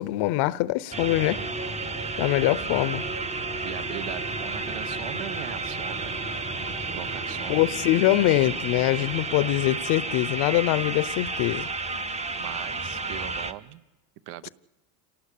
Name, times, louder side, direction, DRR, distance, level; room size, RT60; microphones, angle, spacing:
voice 1, 0.0-1.4 2.2-3.0 7.5-11.7 14.4-14.5, left 16 dB, 55° left, 0.9 m, -23 dB
Organ, 0.8-11.7, left 15 dB, 85° left, 1.3 m, -46 dB
sound 1, 0.9-13.5, right 3 dB, 15° right, 1.0 m, -32 dB
voice 2, 3.6-6.2 6.9-7.6 12.4-13.8 14.3-14.5, right 13 dB, 60° right, 1.1 m, -39 dB
27.5 x 18.5 x 8.5 m
cardioid pair, 140°, 48 cm